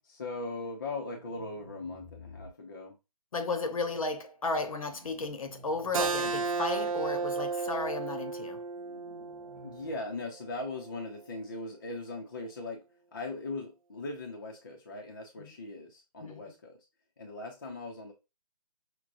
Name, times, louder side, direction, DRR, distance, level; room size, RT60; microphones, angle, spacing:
voice 1, 0.0-3.0 9.6-12.8 13.1-16.8 17.2-18.1, left 2 dB, 30° left, 0.6 m, -39 dB
sound 1, 1.1-2.5 4.8-5.9 6.3-7.0 8.7-9.9, left 1 dB, 15° right, 0.9 m, -53 dB
voice 2, 3.3-8.6 15.4-15.5 16.2-16.4, left 3 dB, 55° left, 0.9 m, -34 dB
Keyboard (musical), 5.9-11.1, right 4 dB, 55° right, 0.5 m, -34 dB
6.1 x 2.2 x 2.5 m
hypercardioid pair, 170°, 21 cm